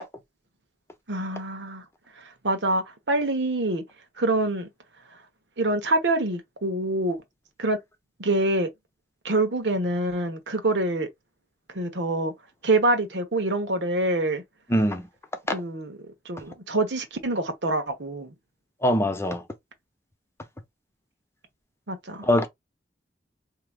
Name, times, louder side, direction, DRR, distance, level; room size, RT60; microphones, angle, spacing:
voice 1, 1.1-1.8 2.2-3.8 4.2-4.7 5.6-7.2 7.6-7.8 8.2-8.7 9.2-11.1 11.7-12.3 12.6-14.4 15.5-18.3 21.9-22.3, right 2 dB, 85° right, 1.0 m, -26 dB
voice 2, 14.7-15.0 15.5-15.6 18.8-19.4 22.2-22.5, equal, 15° left, 0.7 m, -22 dB
4.7 x 2.8 x 2.3 m
head